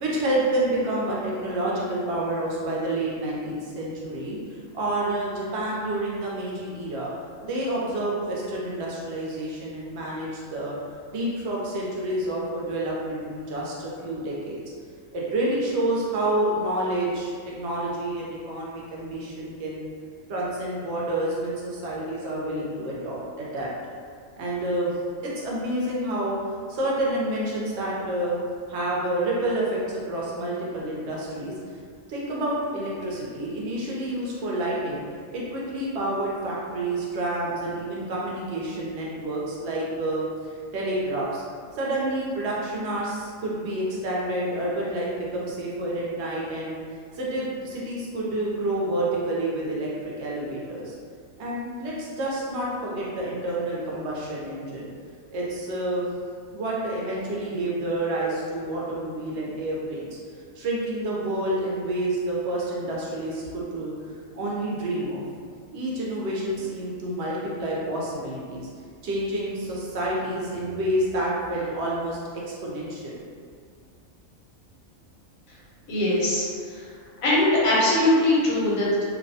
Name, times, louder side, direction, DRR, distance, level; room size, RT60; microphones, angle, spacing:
voice 1, 0.0-4.4 4.7-7.1 7.4-10.8 11.1-14.6 15.1-19.9 20.3-23.7 24.4-24.9 25.2-26.4 26.7-28.4 28.7-31.5 32.1-35.0 35.3-40.3 40.7-41.4 41.7-46.8 47.2-50.9 51.4-54.9 55.3-56.1 56.5-60.1 60.6-63.9 64.3-65.2 65.7-68.7 69.0-73.2, right 1 dB, 65° right, -5 dB, 0.8 m, -28 dB
voice 2, 75.9-76.5 77.2-79.0, left 1 dB, 85° left, -6 dB, 1.1 m, -21 dB
2.6 x 2.1 x 2.6 m, 2.1 s
omnidirectional pair, 1.4 m